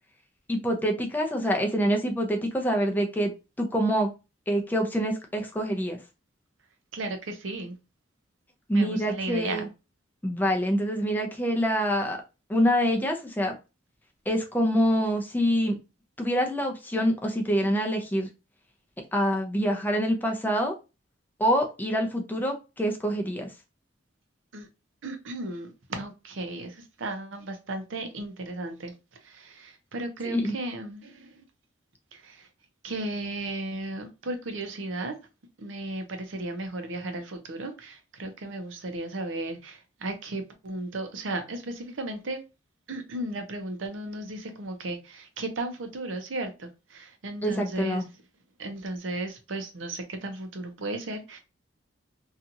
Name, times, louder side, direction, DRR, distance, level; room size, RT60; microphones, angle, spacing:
voice 1, 0.5-3.3 3.6-4.1 4.5-6.0 8.7-9.7 10.2-12.2 12.5-13.5 14.3-15.7 16.2-18.3 19.1-20.7 21.4-23.5 30.2-30.5 47.4-48.1, equal, 10° left, 0.5 m, -26 dB
voice 2, 6.9-7.8 8.7-9.7 24.5-24.7 25.0-28.9 29.2-31.4 32.1-32.5 32.8-35.1 35.6-42.4 42.9-48.0 48.6-51.4, right 2 dB, 75° right, 0.7 m, -35 dB
2.8 x 2.4 x 2.6 m
head